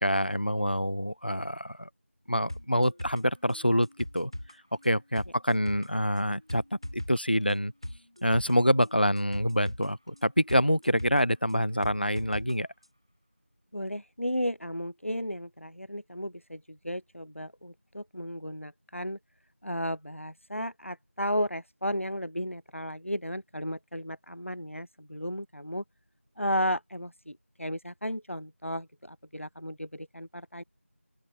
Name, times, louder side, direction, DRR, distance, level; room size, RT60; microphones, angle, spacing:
voice 1, 0.0-1.9 2.3-3.9 4.1-4.3 4.8-6.6 6.9-7.7 8.2-12.7, equal, 45° left, 1.3 m, -26 dB
sound 1, 2.5-12.5 12.8-12.9, left 1 dB, 20° right, 1.1 m, -42 dB
voice 2, 13.7-19.2 19.6-25.8 26.4-30.6, equal, 65° left, 3.4 m, -34 dB
open air
figure-of-eight pair, 180°, 7 cm